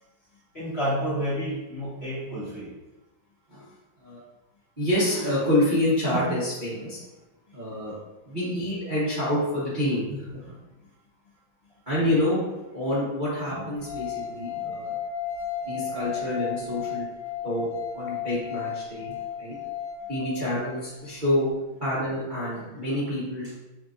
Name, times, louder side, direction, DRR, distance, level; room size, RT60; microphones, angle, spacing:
voice 1, 0.5-2.7, equal, 30° left, -10 dB, 1.6 m, -29 dB
voice 2, 4.8-7.0 7.5-8.0 8.2-10.5 11.9-14.9 15.6-17.1 17.4-19.6 20.1-23.5, left 1 dB, 30° right, -11 dB, 1.0 m, -27 dB
sound 1, 13.8-20.9, left 8 dB, 70° left, 1.3 m, -34 dB
5.1 x 3.7 x 2.5 m, 1.0 s
omnidirectional pair, 2.2 m